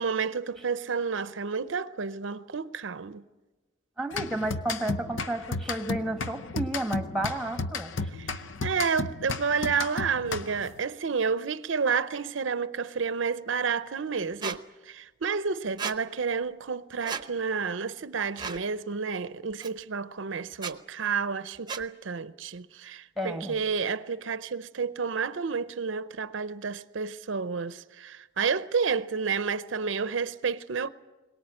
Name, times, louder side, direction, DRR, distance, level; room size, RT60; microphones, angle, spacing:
voice 1, 0.0-3.2 8.1-30.9, right 5 dB, 75° right, 0.6 m, -30 dB
voice 2, 4.0-7.9 23.2-23.6, right 1 dB, ahead, 1.4 m, -32 dB
sound 1, 4.1-10.8, left 3 dB, 80° left, 0.8 m, -34 dB
Squeak, 14.4-14.6 15.8-16.0 17.0-17.3 18.4-18.6 19.6-19.7 20.5-20.7 21.7-21.9, right 6 dB, 20° right, 0.8 m, -34 dB
22.5 x 19.0 x 8.8 m
head